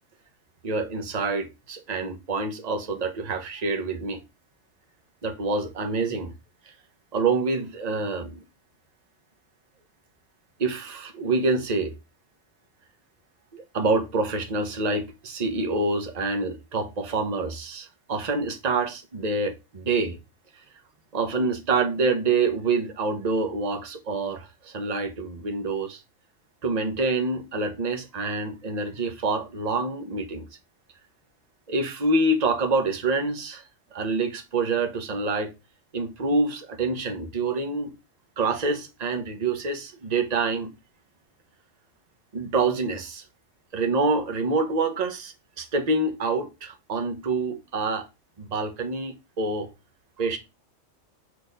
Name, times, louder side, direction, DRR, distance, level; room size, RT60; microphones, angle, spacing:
voice 1, 0.6-4.2 5.2-6.3 6.6-6.7 7.1-8.4 10.6-11.9 13.5-20.2 21.1-26.0 26.6-30.5 31.7-33.6 33.9-35.5 35.9-37.9 38.4-40.7 42.3-43.2 43.7-48.1 48.4-49.7 50.2-50.4, right 3 dB, 35° right, 1.0 m, -26 dB
6.8 x 4.2 x 4.0 m
omnidirectional pair, 1.3 m